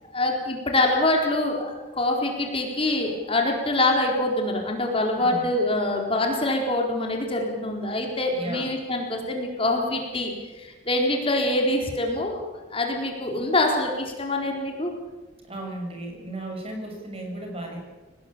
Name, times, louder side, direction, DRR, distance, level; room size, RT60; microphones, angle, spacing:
voice 1, 0.1-10.3 10.6-12.4 12.7-14.9, left 2 dB, 30° left, 1 dB, 4.2 m, -25 dB
voice 2, 5.2-5.5 8.3-8.7 15.5-17.8, right 1 dB, 30° right, 2 dB, 5.9 m, -34 dB
23.5 x 19.0 x 8.7 m, 1.2 s
head